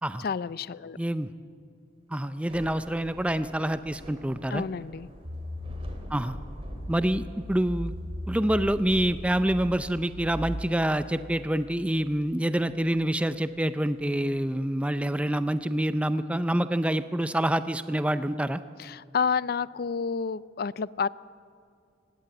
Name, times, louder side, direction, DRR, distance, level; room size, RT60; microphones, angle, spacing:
voice 1, 0.2-1.0 4.5-5.1 18.8-21.1, left 6 dB, 55° left, 19 dB, 0.4 m, -29 dB
voice 2, 1.0-1.3 2.1-4.6 6.1-6.4 6.9-7.9 8.3-18.6, right 1 dB, 5° right, 12 dB, 0.4 m, -27 dB
Thunder / Rain, 2.3-15.5, equal, 30° right, 2.7 m, -48 dB
sound 1, 5.2-10.7, equal, 65° right, 4.5 m, -37 dB
18.5 x 16.5 x 9.3 m, 2.4 s
head